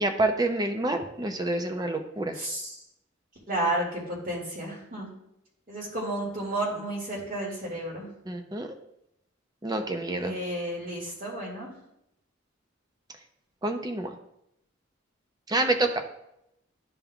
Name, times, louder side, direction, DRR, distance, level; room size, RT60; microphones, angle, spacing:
voice 1, 0.0-2.4 8.3-8.7 9.6-10.4 13.6-14.1 15.5-16.0, right 2 dB, 20° right, 5 dB, 0.6 m, -27 dB
voice 2, 2.3-2.7 3.5-5.1 5.7-8.1 10.2-11.7, right 1 dB, 45° right, -3 dB, 2.3 m, -32 dB
11.5 x 5.3 x 2.4 m, 0.81 s
head